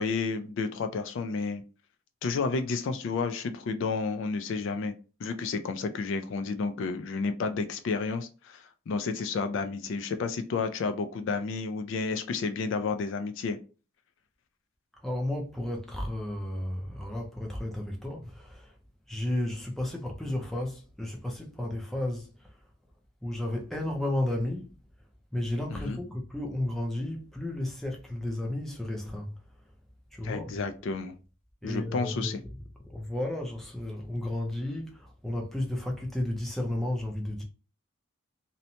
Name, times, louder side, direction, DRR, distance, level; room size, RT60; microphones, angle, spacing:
voice 1, 0.0-1.6 2.2-4.9 5.2-13.6 25.7-26.0 30.2-31.2 31.6-32.4, left 4 dB, 60° left, 0.3 m, -31 dB
voice 2, 15.0-18.7 19.1-22.3 23.2-24.7 25.3-29.3 30.1-30.6 31.6-32.3 32.9-37.4, left 1 dB, ahead, 0.5 m, -33 dB
2.7 x 2.1 x 2.7 m
head